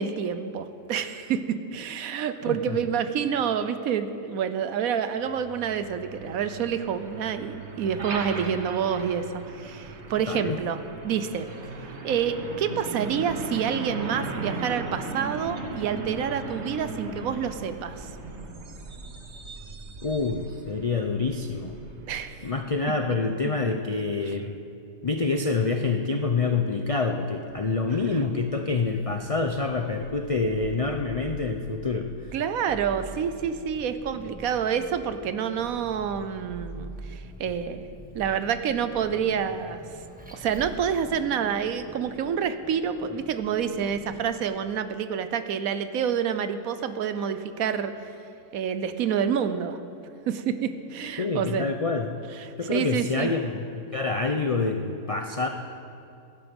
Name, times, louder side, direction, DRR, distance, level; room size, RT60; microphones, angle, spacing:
voice 1, 0.0-11.5 12.0-18.1 22.1-22.5 24.3-24.4 32.3-37.8 38.1-39.8 40.3-47.9 48.5-49.8 50.3-51.7 52.4-53.3, right 7 dB, 70° right, 11 dB, 1.1 m, -28 dB
voice 2, 2.4-2.8 10.3-10.6 20.0-21.8 22.4-24.6 25.0-32.3 51.2-52.2 52.6-55.5, left 3 dB, 60° left, 4 dB, 0.3 m, -27 dB
Truck, 5.2-22.8, right 3 dB, 50° right, 1.4 m, -38 dB
Vehicle, 27.5-44.4, right 1 dB, 5° right, 1.1 m, -45 dB
17.0 x 12.0 x 5.3 m, 2.6 s
omnidirectional pair, 1.6 m